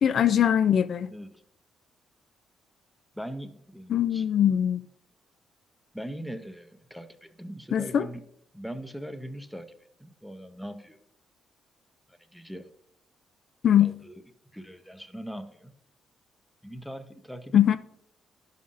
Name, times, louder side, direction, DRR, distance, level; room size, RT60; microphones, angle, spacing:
voice 1, 0.0-1.1 3.9-4.8 7.7-8.1 13.6-14.0 17.5-17.8, left 9 dB, 60° left, 0.3 m, -22 dB
voice 2, 1.1-1.4 3.1-4.3 5.9-8.2 8.5-9.7 10.0-11.0 12.1-12.7 13.8-14.2 14.5-15.7 16.6-17.8, equal, ahead, 0.7 m, -41 dB
11.0 x 5.4 x 2.5 m
cardioid pair, 90°, 0 cm